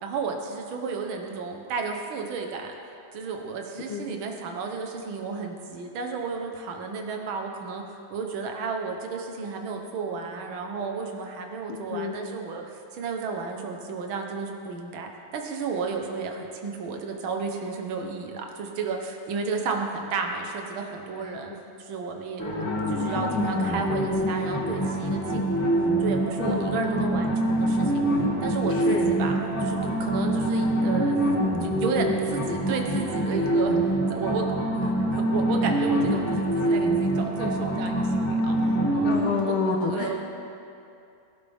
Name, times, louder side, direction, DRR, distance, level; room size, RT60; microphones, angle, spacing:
voice 1, 0.0-7.8 8.1-21.5 21.8-25.7 26.0-31.3 31.6-39.1 39.4-39.6 39.9-40.3, right 5 dB, 55° right, 2 dB, 1.6 m, -33 dB
sound 1, 22.4-39.2, right 1 dB, 5° left, 1.9 m, -25 dB
voice 2, 26.4-26.7 28.9-29.1 36.0-36.2 39.0-40.3, left 4 dB, 60° left, 1 dB, 1.6 m, -28 dB
22.0 x 11.5 x 3.6 m, 2.6 s
omnidirectional pair, 3.4 m